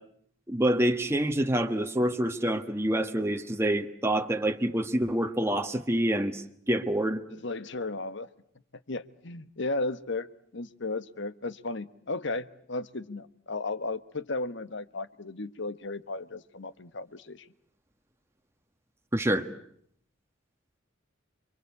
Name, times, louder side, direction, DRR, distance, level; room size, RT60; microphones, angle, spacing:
voice 1, 0.5-7.2 19.1-19.5, right 1 dB, 15° right, 5 dB, 1.3 m, -27 dB
voice 2, 7.3-8.3 8.9-10.3 10.5-17.4, left 3 dB, 65° left, 13 dB, 1.3 m, -35 dB
29.5 x 23.5 x 8.3 m, 0.66 s
head